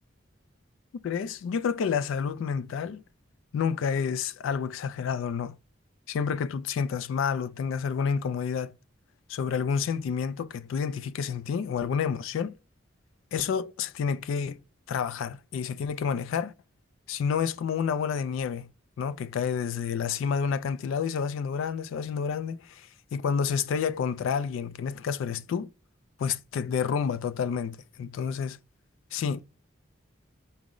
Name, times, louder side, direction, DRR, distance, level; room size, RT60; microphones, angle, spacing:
voice 1, 1.0-3.0 3.5-5.6 6.1-8.7 9.3-12.5 13.3-14.6 14.9-16.5 17.1-18.7 19.0-25.7 26.2-28.6 29.1-29.4, left 6 dB, 75° left, 0.3 m, -29 dB
4.8 x 2.0 x 3.7 m
head